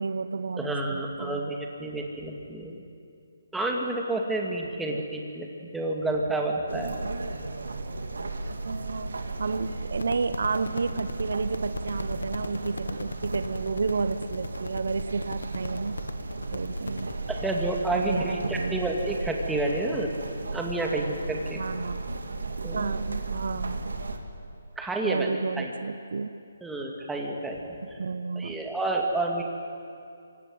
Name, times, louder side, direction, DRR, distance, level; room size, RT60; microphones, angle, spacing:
voice 1, 0.0-1.4 4.9-5.1 8.6-16.0 16.5-17.1 17.9-18.8 21.5-22.0 22.7-23.8 25.0-26.3 28.0-28.6, right 4 dB, 70° right, 12 dB, 0.9 m, -31 dB
voice 2, 0.6-2.8 3.5-6.9 17.3-20.1 20.5-21.6 22.6-22.9 24.8-25.7 26.6-28.0 28.4-29.4, right 2 dB, 5° right, 0 dB, 2.3 m, -30 dB
sound 1, 6.7-24.2, right 3 dB, 85° right, 2.5 m, -35 dB
sound 2, 10.0-17.1, left 3 dB, 90° left, 1.4 m, -38 dB
26.0 x 16.5 x 9.6 m, 2.5 s
hypercardioid pair, 160°, 0 cm